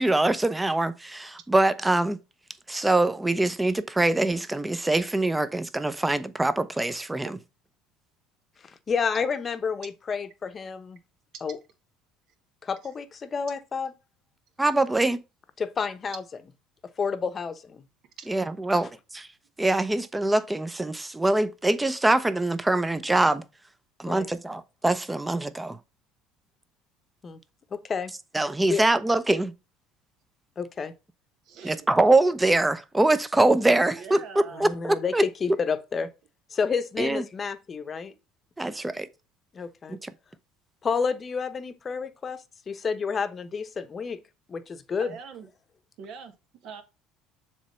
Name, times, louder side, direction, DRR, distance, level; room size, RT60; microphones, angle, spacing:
voice 1, 0.0-2.2 2.7-7.3 14.6-15.2 18.3-19.3 19.6-23.4 24.0-25.8 28.3-29.5 31.6-35.2 37.0-37.2 38.6-39.1 40.0-40.1, right 2 dB, 10° right, 0.8 m, -24 dB
voice 2, 8.6-11.0 11.4-11.6 12.6-13.9 15.6-16.2 17.0-17.8 24.1-24.3 27.2-27.4 27.7-28.1 28.7-28.8 30.6-30.9 34.5-36.1 36.5-38.1 39.5-40.0 40.8-44.2 44.5-45.1, left 5 dB, 35° left, 0.9 m, -30 dB
voice 3, 18.2-18.6 31.4-31.9 33.7-34.7 38.1-38.2 44.5-44.6 45.0-45.5 46.0-46.3 46.6-46.8, right 6 dB, 65° right, 1.6 m, -43 dB
7.2 x 3.4 x 5.6 m
supercardioid pair, 80°, 0 cm